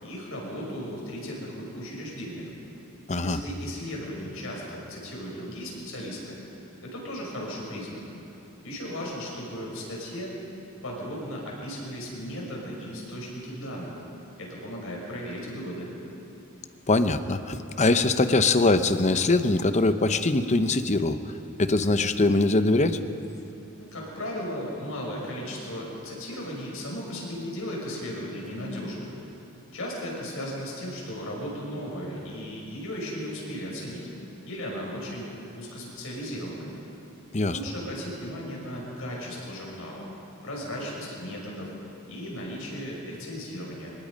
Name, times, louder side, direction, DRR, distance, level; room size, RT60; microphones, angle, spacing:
voice 1, 0.0-2.5 3.2-6.4 6.8-8.0 8.6-10.3 10.8-14.0 14.4-15.9 23.8-29.1 29.7-34.0 34.5-35.3 35.5-36.7 37.5-40.1 40.4-41.7 42.1-43.9, equal, 65° left, -3 dB, 6.3 m, -36 dB
voice 2, 16.9-21.2 21.6-23.0 37.3-37.6, left 2 dB, 30° left, 10 dB, 0.8 m, -22 dB
24.5 x 21.5 x 5.3 m, 2.9 s
head